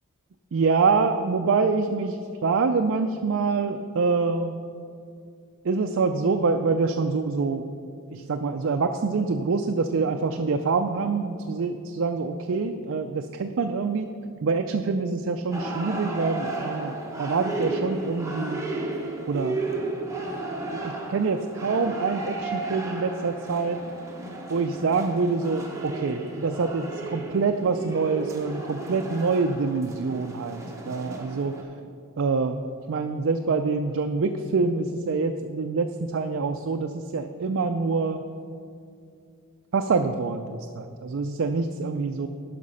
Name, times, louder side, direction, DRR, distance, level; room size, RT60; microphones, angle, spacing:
voice 1, 0.5-4.6 5.6-7.6 8.1-14.1 14.4-18.6 19.3-19.6 20.7-23.8 24.5-31.6 32.2-38.2 39.7-42.3, right 4 dB, 60° right, 6 dB, 0.4 m, -26 dB
sound 1, 15.5-31.6, right 2 dB, 15° right, 1.0 m, -34 dB
11.5 x 5.9 x 5.5 m, 2.4 s
head